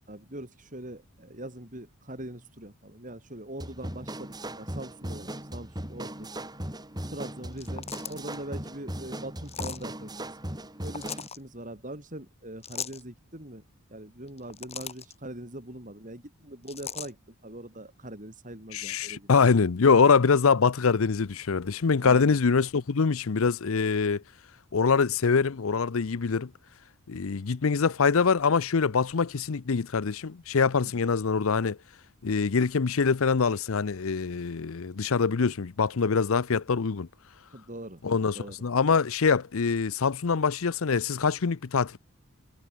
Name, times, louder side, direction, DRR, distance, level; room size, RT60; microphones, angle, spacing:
voice 1, 0.1-6.3 7.0-10.3 10.8-13.6 13.9-17.2 17.4-19.4 22.0-22.4 37.5-38.0 38.3-38.7, right 1 dB, 35° right, 6.1 m, -42 dB
sound 1, 3.6-11.3, right 1 dB, 20° right, 6.1 m, -38 dB
sound 2, 7.5-8.4 9.4-9.8 10.8-11.4 12.6-13.0 14.3-15.1 16.7-17.1, left 7 dB, 30° left, 5.1 m, -38 dB
voice 2, 18.7-24.2 24.7-26.5 27.1-31.8 32.2-37.1 38.0-42.0, left 5 dB, 70° left, 0.6 m, -24 dB
head